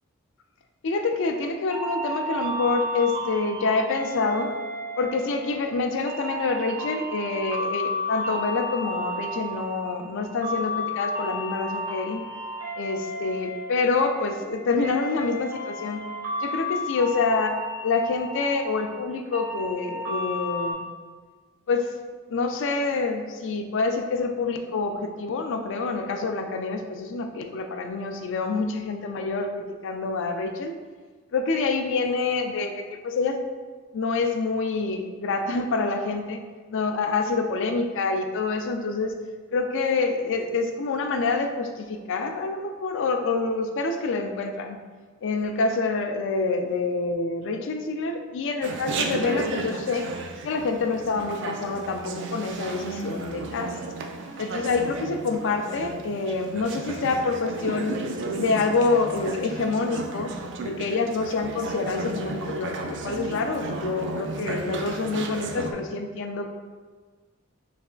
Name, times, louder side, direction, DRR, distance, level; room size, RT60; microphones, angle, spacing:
voice 1, 0.8-4.5 5.0-12.2 12.8-16.0 16.4-17.6 17.8-20.8 21.7-21.9 22.3-30.7 31.3-33.4 33.9-36.4 36.7-39.1 39.5-44.8 45.2-50.1 50.4-53.8 54.4-58.0 58.4-60.3 60.6-66.5, left 3 dB, 65° left, 6 dB, 0.4 m, -27 dB
sound 1, 1.7-20.7, left 1 dB, 80° right, 1.1 m, -33 dB
Chatter, 48.6-65.7, right 3 dB, 60° right, 0.4 m, -34 dB
3.3 x 3.1 x 3.7 m, 1.5 s
head